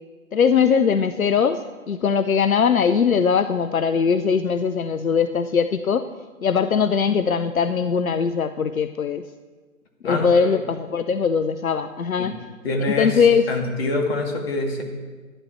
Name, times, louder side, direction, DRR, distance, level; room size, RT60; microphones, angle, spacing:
voice 1, 0.3-6.0 6.4-9.2 10.0-12.3 13.0-13.5, left 6 dB, 85° left, 11 dB, 0.6 m, -20 dB
voice 2, 10.0-10.6 12.2-12.3 12.6-13.2 13.5-14.8, left 2 dB, 45° left, 2 dB, 2.2 m, -25 dB
12.5 x 11.0 x 4.3 m, 1.4 s
figure-of-eight pair, 130°, 41 cm